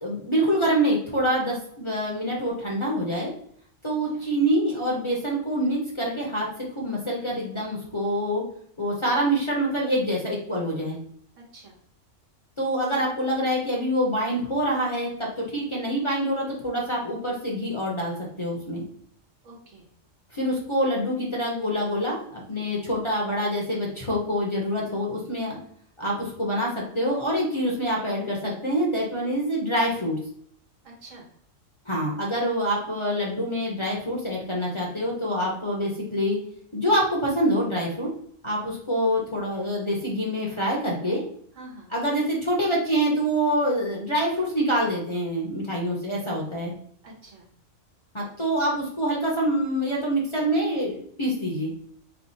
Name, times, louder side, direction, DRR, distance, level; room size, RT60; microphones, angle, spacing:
voice 1, 0.0-3.3 3.8-6.5 6.7-8.4 8.8-11.0 12.6-18.8 20.3-25.6 26.0-30.2 31.9-36.4 36.7-38.1 38.4-41.2 41.9-46.7 48.1-51.7, equal, 30° left, -4 dB, 0.7 m, -26 dB
voice 2, 3.9-4.2 11.4-11.8 19.4-19.9 30.8-31.3 41.5-41.9 47.0-47.5, right 2 dB, 80° right, -1 dB, 1.3 m, -47 dB
3.2 x 2.4 x 4.1 m, 0.62 s
omnidirectional pair, 1.3 m